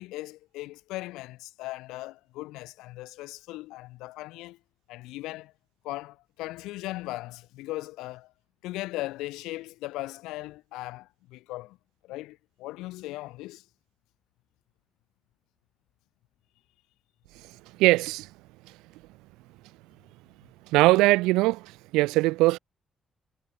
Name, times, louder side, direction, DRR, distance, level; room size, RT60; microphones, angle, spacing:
voice 1, 0.0-4.6 4.9-5.5 5.8-8.3 8.6-11.8 12.0-13.6, left 18 dB, 80° left, 7.9 m, -38 dB
voice 2, 17.8-18.3 20.7-22.6, right 20 dB, 80° right, 1.4 m, -21 dB
hypercardioid pair, 40°, 0 cm